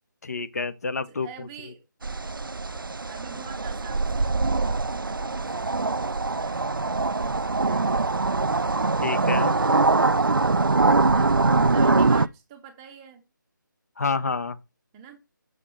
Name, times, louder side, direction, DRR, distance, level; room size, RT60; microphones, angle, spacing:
voice 1, 0.2-1.3 9.0-9.6 14.0-14.6, left 4 dB, 50° left, 0.9 m, -28 dB
voice 2, 1.1-1.8 3.0-8.1 9.2-9.9 11.0-13.2 14.9-15.2, right 7 dB, 10° right, 0.7 m, -44 dB
sound 1, 2.0-12.3, right 3 dB, 90° right, 0.4 m, -23 dB
7.3 x 6.5 x 4.3 m
figure-of-eight pair, 155°, 11 cm